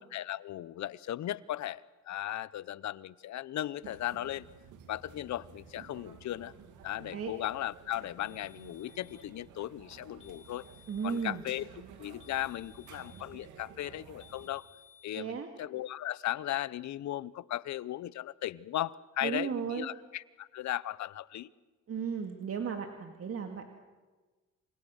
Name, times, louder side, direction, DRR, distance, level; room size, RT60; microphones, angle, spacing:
voice 1, 0.1-4.5 4.9-6.5 6.8-10.6 11.0-11.7 12.0-14.6 15.0-21.5, left 13 dB, 65° left, 20 dB, 0.8 m, -37 dB
sound 1, 3.8-14.5, right 7 dB, 85° right, 2.6 m, -53 dB
sound 2, 8.2-9.3 10.2-11.3 12.2-13.3 14.2-15.3, left 7 dB, 80° left, 3.5 m, -59 dB
voice 2, 10.9-11.4 15.1-15.5 19.2-19.9 21.9-23.7, right 6 dB, 50° right, 4 dB, 2.3 m, -35 dB
28.5 x 24.5 x 6.5 m, 1.3 s
cardioid pair, 90°, 30 cm